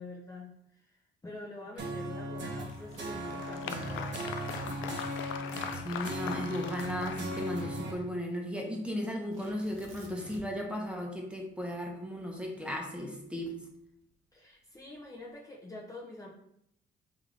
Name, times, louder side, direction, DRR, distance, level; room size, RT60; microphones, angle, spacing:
voice 1, 0.0-4.2 14.3-16.3, left 2 dB, 15° left, -3 dB, 0.8 m, -46 dB
sound 1, 1.8-7.9, right 1 dB, 65° right, 1.1 m, -38 dB
Applause, 2.7-8.0, left 8 dB, 80° left, 0.4 m, -41 dB
voice 2, 5.7-13.5, equal, 5° right, 0 dB, 1.0 m, -36 dB
Tearing, 9.3-10.7 11.0-11.1 11.6-14.0 14.7-15.2, right 3 dB, 90° right, 1.2 m, -53 dB
3.5 x 3.5 x 3.8 m, 0.74 s
cardioid pair, 90°, 20 cm